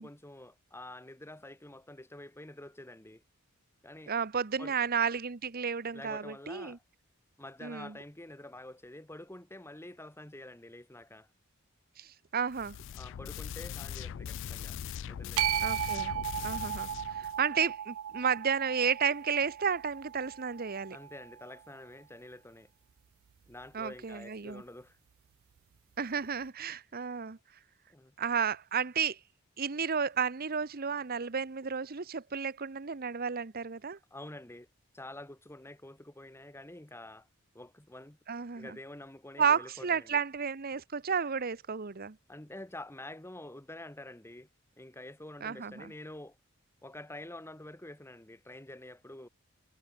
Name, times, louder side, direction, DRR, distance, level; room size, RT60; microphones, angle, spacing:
voice 1, 0.0-3.2 3.8-4.1 4.6-4.7 5.9-6.8 7.4-11.3 12.9-14.8 15.1-15.5 20.9-22.7 23.5-25.0 27.9-28.1 34.1-34.7 34.9-37.3 37.5-38.2 38.6-40.2 42.3-44.5 44.8-46.4 46.8-49.3, left 1 dB, 10° left, 1.4 m, -47 dB
voice 2, 4.1-6.8 7.6-7.9 12.0-12.8 15.6-16.1 16.4-21.0 23.7-24.6 26.0-27.4 28.2-29.2 29.6-34.0 38.3-38.8 39.4-42.2 45.4-45.9, right 6 dB, 45° right, 0.8 m, -32 dB
sound 1, 12.5-17.4, left 8 dB, 60° left, 0.3 m, -41 dB
sound 2, 15.4-21.6, right 11 dB, 70° right, 0.4 m, -36 dB
head